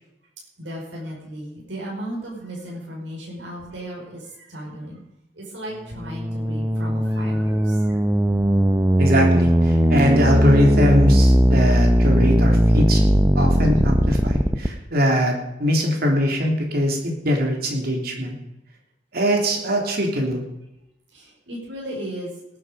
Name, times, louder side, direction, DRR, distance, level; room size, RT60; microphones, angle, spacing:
voice 1, 0.6-5.0 5.4-8.0 13.8-13.9 21.1-22.3, right 1 dB, 80° right, -3 dB, 5.2 m, -35 dB
sound 1, 5.9-14.7, right 1 dB, 15° right, 0.7 m, -18 dB
voice 2, 9.0-13.0 13.3-18.3 19.1-20.4, equal, 55° right, 1 dB, 3.3 m, -22 dB
18.5 x 9.7 x 5.2 m, 0.88 s
head